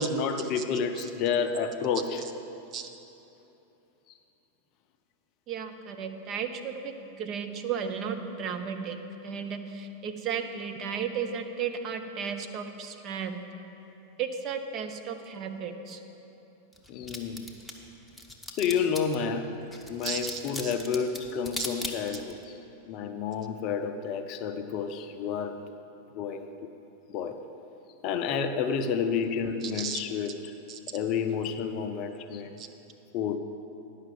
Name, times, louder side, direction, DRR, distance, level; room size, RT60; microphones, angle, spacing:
voice 1, 0.0-2.2 16.9-17.5 18.6-19.5 19.9-22.6 22.9-25.6 26.1-26.7 27.1-27.4 28.0-30.3 30.9-32.6 33.1-33.4, left 6 dB, 40° left, 8 dB, 0.5 m, -30 dB
voice 2, 5.5-9.0 9.2-13.4 14.2-16.0 20.0-20.7 21.6-21.7 29.6-30.0 30.7-30.8 32.6-32.7, right 7 dB, 35° right, 6 dB, 0.7 m, -34 dB
sound 1, 16.7-19.2 19.7-22.4, left 1 dB, 5° left, 0.9 m, -38 dB
10.0 x 5.8 x 7.4 m, 3.0 s
figure-of-eight pair, 90°, 0 cm